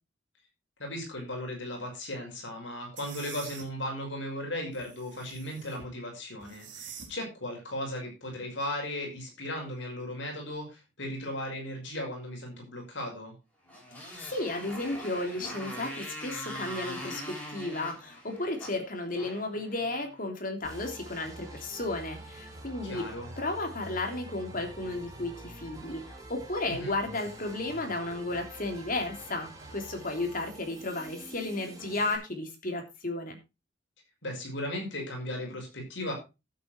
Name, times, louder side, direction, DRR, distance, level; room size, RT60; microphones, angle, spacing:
voice 1, 0.8-13.3 22.8-23.3 26.8-26.9 34.2-36.1, left 1 dB, 70° left, 2 dB, 5.8 m, -36 dB
sound 1, 3.0-3.6 4.7-5.9 6.4-7.1, right 7 dB, 70° right, 4.0 m, -46 dB
Motorcycle, 13.7-20.2, equal, 10° left, 6.9 m, -42 dB
voice 2, 13.9-23.1 23.4-33.4, left 2 dB, 45° left, 4 dB, 3.2 m, -34 dB
sound 2, 20.6-32.2, right 1 dB, 20° right, 4.0 m, -46 dB
12.0 x 8.7 x 4.5 m, 0.28 s
head